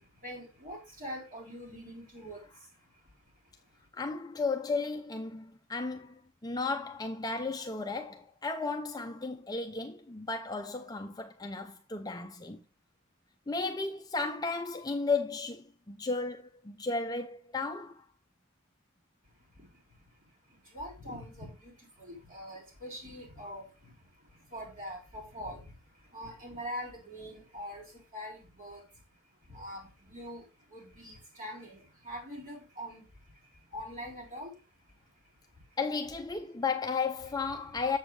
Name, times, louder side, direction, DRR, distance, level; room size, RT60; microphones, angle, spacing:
voice 1, 0.0-3.9 19.2-35.8 37.6-37.8, equal, 35° right, 3.4 m, -45 dB
voice 2, 3.9-12.6 13.5-17.9 35.8-38.0, left 4 dB, 15° left, 0.5 m, -34 dB
7.3 x 7.2 x 3.2 m
head